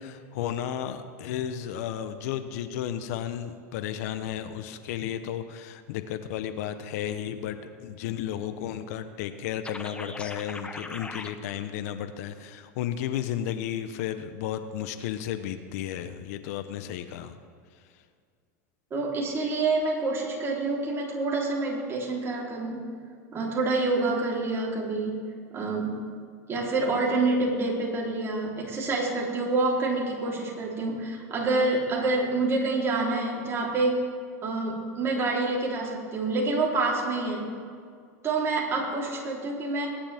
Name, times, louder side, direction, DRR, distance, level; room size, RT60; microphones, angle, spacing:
voice 1, 0.0-17.4, left 10 dB, 70° left, 10 dB, 0.9 m, -33 dB
sound 1, 9.6-11.3, left 3 dB, 10° left, 1.0 m, -39 dB
voice 2, 18.9-22.8 23.3-26.0 26.5-34.0 34.4-37.6 38.2-39.9, right 3 dB, 30° right, -3 dB, 3.7 m, -27 dB
20.5 x 10.0 x 3.6 m, 2.1 s
hypercardioid pair, 110°, 9 cm